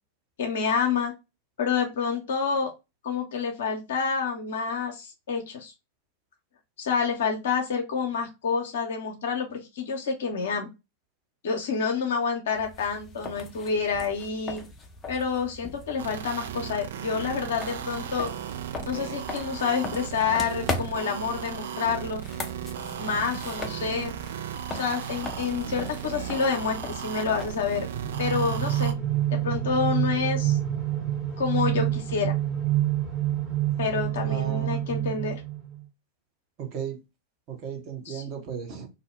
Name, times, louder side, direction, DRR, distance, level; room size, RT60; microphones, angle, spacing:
voice 1, 0.4-1.1 1.6-2.7 3.0-5.7 6.8-10.7 11.4-14.6 15.1-18.3 18.9-22.2 23.0-24.2 24.7-27.9 28.2-28.9 29.3-30.6 31.4-32.3 33.8-35.4 38.1-38.2, left 5 dB, 60° left, 3 dB, 0.5 m, -28 dB
sound 1, 12.5-28.6, left 3 dB, 15° left, 0.5 m, -40 dB
sound 2, 16.0-28.9, right 9 dB, 60° right, 0.3 m, -36 dB
sound 3, 27.9-35.8, right 13 dB, 15° right, 0.9 m, -27 dB
voice 2, 34.2-34.8 36.6-37.0 37.5-38.9, right 8 dB, 40° right, 2 dB, 0.9 m, -35 dB
2.6 x 2.1 x 3.0 m, 0.25 s
figure-of-eight pair, 90°, 0 cm